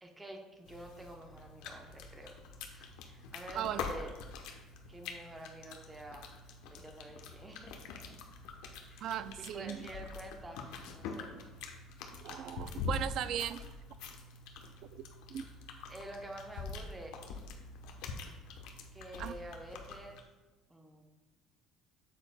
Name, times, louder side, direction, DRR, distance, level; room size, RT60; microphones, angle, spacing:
voice 1, 0.0-2.3 2.7-4.1 4.9-6.3 6.7-7.8 8.9-9.1 9.5-10.7 10.9-11.3 15.9-17.2 18.9-20.2 20.7-21.0, right 1 dB, 10° right, 2 dB, 0.8 m, -48 dB
sound 1, 0.7-20.2, left 4 dB, 80° left, 0.9 m, -45 dB
voice 2, 9.0-9.9 12.0-13.7 14.9-15.0 15.3-15.4 19.2-19.3, right 10 dB, 55° right, 14 dB, 0.3 m, -38 dB
8.5 x 7.7 x 2.2 m, 1.2 s
cardioid pair, 150°, 0 cm